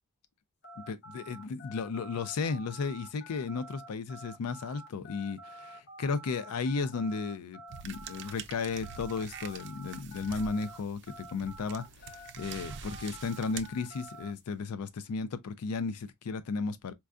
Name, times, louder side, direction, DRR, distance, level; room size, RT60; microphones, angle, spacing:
sound 1, 0.6-10.8 11.1-14.3, equal, 55° left, 1.2 m, -49 dB
voice 1, 0.9-16.9, left 4 dB, 90° left, 0.4 m, -34 dB
sound 2, 7.7-14.4, right 7 dB, 55° right, 0.5 m, -46 dB
4.4 x 2.2 x 2.4 m
head